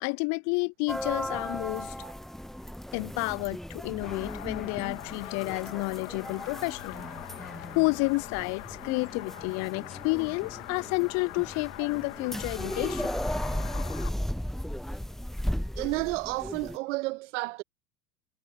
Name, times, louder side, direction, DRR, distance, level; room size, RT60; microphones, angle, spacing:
voice 1, 0.0-1.9 2.9-7.1 7.7-13.1, left 30 dB, 40° left, 0.6 m, -30 dB
sound 1, 0.9-16.8, equal, ahead, 0.7 m, -36 dB
sound 2, 4.0-14.1, left 17 dB, 65° left, 2.4 m, -43 dB
voice 2, 15.8-17.6, right 22 dB, 55° right, 1.1 m, -31 dB
hypercardioid pair, 85°, 42 cm